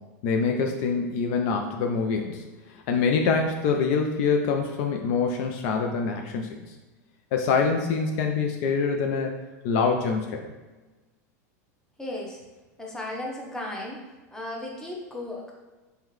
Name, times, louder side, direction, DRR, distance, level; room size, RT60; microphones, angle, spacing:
voice 1, 0.2-2.4 2.7-6.6 7.3-9.3 9.6-10.5, left 5 dB, 60° left, 3 dB, 0.4 m, -25 dB
voice 2, 12.0-12.4 12.8-14.0 14.3-15.5, left 1 dB, 5° left, -2 dB, 0.7 m, -35 dB
3.4 x 2.2 x 3.1 m, 1.2 s
hypercardioid pair, 110°, 9 cm